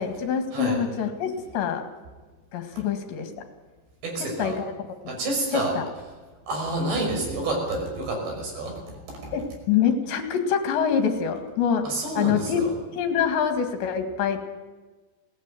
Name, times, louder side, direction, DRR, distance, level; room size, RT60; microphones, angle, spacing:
voice 1, 0.0-1.9 2.5-3.3 4.2-4.7 5.1-5.2 5.5-5.9 9.3-11.8 12.2-12.6 13.0-14.4, left 7 dB, 70° left, 7 dB, 4.0 m, -25 dB
voice 2, 4.0-4.6 5.1-5.8 6.5-8.8 9.2-9.3 11.8-12.7, right 2 dB, 70° right, 1 dB, 7.9 m, -28 dB
21.5 x 17.5 x 9.2 m, 1.3 s
omnidirectional pair, 5.3 m